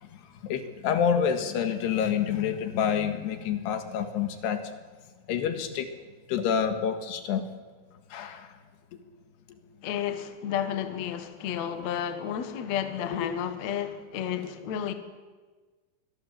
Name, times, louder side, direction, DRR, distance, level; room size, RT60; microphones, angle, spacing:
voice 1, 0.0-4.7 5.3-5.9 6.3-7.5 8.1-8.6 13.2-13.3, left 7 dB, 75° left, 3.7 m, -28 dB
voice 2, 9.8-14.9, left 9 dB, 60° left, 2.0 m, -32 dB
25.5 x 21.0 x 7.4 m
omnidirectional pair, 4.9 m